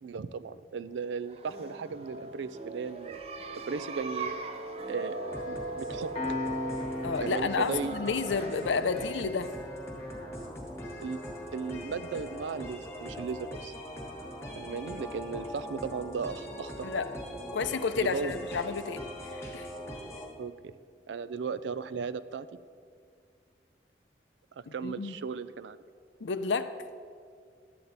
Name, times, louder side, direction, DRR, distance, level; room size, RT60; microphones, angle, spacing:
voice 1, 0.0-3.2 3.6-4.3 4.9-5.2 5.5-6.1 7.2-7.9 11.0-11.2 11.5-13.7 14.6-16.9 18.0-18.3 20.4-20.5 21.1-22.5 24.6-25.8, right 5 dB, 85° right, 14 dB, 0.4 m, -36 dB
sound 1, 1.2-10.7, right 2 dB, 35° right, 0.5 m, -40 dB
sound 2, 5.1-20.3, equal, 15° left, 1.3 m, -41 dB
Piano, 6.1-17.2, left 2 dB, 30° left, 1.1 m, -43 dB
voice 2, 7.0-9.5 16.8-17.1 17.5-19.7 24.7-25.2 26.2-26.7, left 5 dB, 90° left, 11 dB, 0.5 m, -31 dB
11.5 x 8.5 x 4.0 m, 2.2 s
head